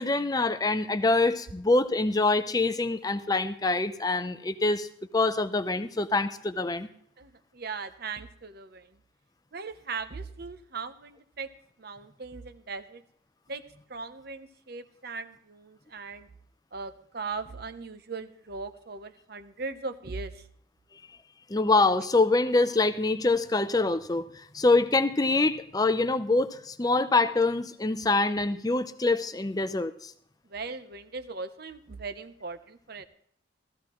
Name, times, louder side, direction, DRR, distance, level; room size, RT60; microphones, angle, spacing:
voice 1, 0.0-4.9 5.1-6.9 21.5-30.1, left 3 dB, 20° left, 11 dB, 0.5 m, -25 dB
voice 2, 7.2-8.9 9.5-11.5 11.8-13.0 13.5-13.6 13.9-16.3 16.7-20.4 30.5-33.1, right 4 dB, 50° right, 11 dB, 0.8 m, -39 dB
16.0 x 14.0 x 3.0 m, 0.65 s
head